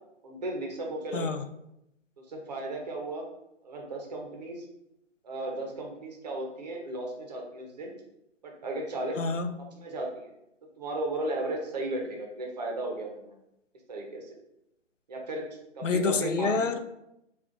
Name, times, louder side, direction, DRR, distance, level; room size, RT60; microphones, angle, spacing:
voice 1, 0.2-1.3 2.2-3.2 3.6-4.6 5.2-7.9 8.4-9.2 9.6-10.3 10.8-13.3 13.9-14.3 15.1-15.5 15.7-16.5, right 2 dB, 35° right, 0 dB, 0.8 m, -35 dB
voice 2, 1.1-1.4 9.2-9.5 15.8-16.8, left 4 dB, 85° left, 9 dB, 0.5 m, -27 dB
5.2 x 2.4 x 2.5 m, 0.83 s
figure-of-eight pair, 140°, 36 cm